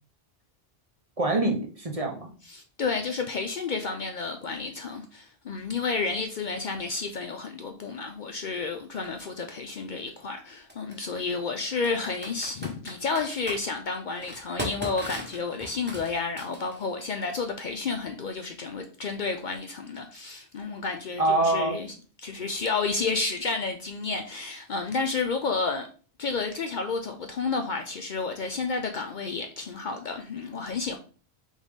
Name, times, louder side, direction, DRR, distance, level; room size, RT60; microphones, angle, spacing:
voice 1, 1.2-2.3 21.2-21.8, right 2 dB, 35° right, 0.8 m, -25 dB
voice 2, 2.5-21.9 22.2-25.9 26.2-31.0, left 4 dB, 55° left, 0.6 m, -31 dB
Computer keyboard, 9.0-9.1 10.7-11.0 11.8-13.6 14.2-16.9, equal, 10° right, 1.0 m, -37 dB
3.9 x 3.5 x 3.5 m
omnidirectional pair, 1.1 m